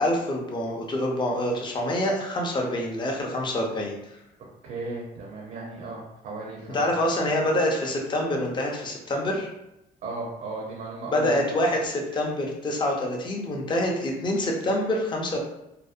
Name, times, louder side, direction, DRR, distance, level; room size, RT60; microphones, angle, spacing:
voice 1, 0.0-3.9 6.7-9.5 11.1-15.4, left 1 dB, 25° left, -1 dB, 0.5 m, -26 dB
voice 2, 4.4-6.9 10.0-11.5, right 3 dB, 60° right, -2 dB, 0.6 m, -36 dB
2.6 x 2.0 x 2.4 m, 0.87 s
cardioid pair, 110°, 17 cm